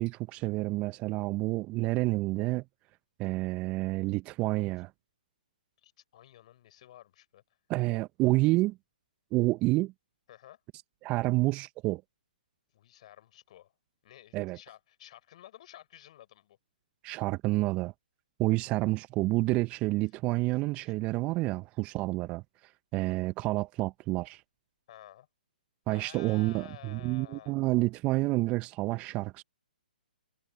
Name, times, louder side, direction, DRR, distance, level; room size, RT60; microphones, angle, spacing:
voice 1, 0.0-2.6 3.2-4.9 7.7-8.8 9.3-9.9 11.0-12.0 14.3-14.6 17.0-17.9 18.4-22.4 22.9-24.4 25.9-29.4, right 20 dB, 25° right, 1.1 m, -29 dB
voice 2, 5.8-7.4 10.3-10.6 12.7-13.7 14.0-16.6 24.9-25.3 25.9-27.6, left 13 dB, 45° left, 5.4 m, -52 dB
figure-of-eight pair, 130°, 5 cm